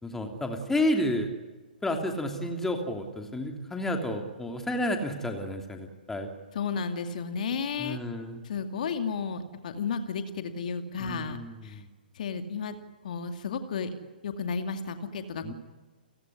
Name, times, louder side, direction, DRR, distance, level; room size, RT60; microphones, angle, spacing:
voice 1, 0.0-1.3 1.8-6.3 7.8-8.4 11.0-11.9 15.4-15.5, left 1 dB, 5° left, 4 dB, 3.0 m, -31 dB
voice 2, 6.5-8.0 8.4-11.8 12.1-12.8 13.0-13.9 14.2-15.5, left 5 dB, 55° left, 7 dB, 2.3 m, -33 dB
30.0 x 16.5 x 9.9 m, 1.3 s
figure-of-eight pair, 125°, 5 cm